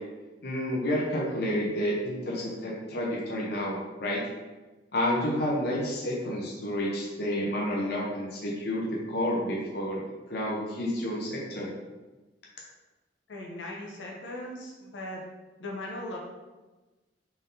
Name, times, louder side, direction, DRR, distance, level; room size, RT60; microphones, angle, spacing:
voice 1, 0.4-4.2 4.9-10.0 10.3-11.7, equal, 60° left, -4 dB, 0.7 m, -30 dB
voice 2, 13.3-15.2 15.6-16.2, left 1 dB, 90° left, -2 dB, 0.7 m, -38 dB
3.8 x 3.4 x 2.7 m, 1.2 s
head